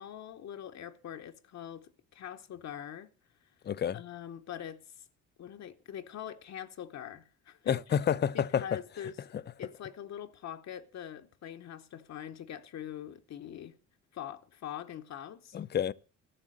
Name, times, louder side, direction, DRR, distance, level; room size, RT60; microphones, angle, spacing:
voice 1, 0.0-3.1 3.9-5.0 5.4-7.7 8.3-9.2 9.6-13.8 14.1-15.6, left 10 dB, 60° left, 0.9 m, -43 dB
voice 2, 3.6-4.0 7.7-8.8 9.3-9.4 15.5-15.9, left 8 dB, 35° left, 0.5 m, -29 dB
12.0 x 7.3 x 7.7 m
cardioid pair, 90°, 30 cm